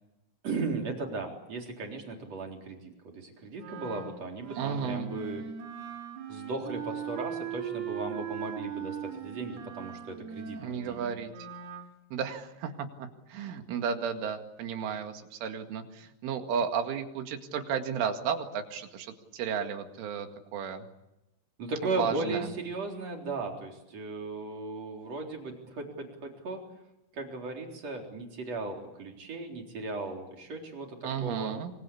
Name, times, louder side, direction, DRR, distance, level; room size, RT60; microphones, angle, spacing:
voice 1, 0.4-5.4 6.3-11.1 21.6-26.6 27.1-31.5, right 3 dB, 35° right, 2 dB, 4.4 m, -36 dB
Wind instrument woodwind instrument, 3.6-11.9, right 8 dB, 60° right, 4.2 m, -40 dB
voice 2, 4.6-5.1 10.6-11.3 12.1-12.7 13.0-20.8 22.0-22.5 31.0-31.7, right 7 dB, 75° right, 6 dB, 4.5 m, -33 dB
25.5 x 24.0 x 8.6 m, 0.93 s
omnidirectional pair, 5.7 m